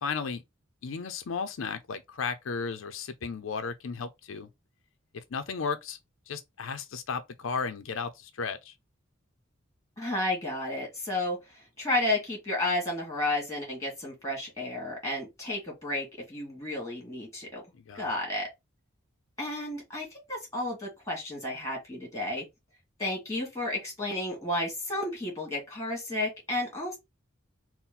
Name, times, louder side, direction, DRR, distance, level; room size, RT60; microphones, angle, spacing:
voice 1, 0.0-0.4 0.8-4.5 5.3-6.0 6.3-8.7 17.7-18.1, left 5 dB, 80° left, 0.5 m, -34 dB
voice 2, 10.0-17.6 17.9-18.5 19.4-22.5 23.0-27.0, left 1 dB, 15° left, 2.1 m, -32 dB
4.2 x 2.1 x 3.7 m
head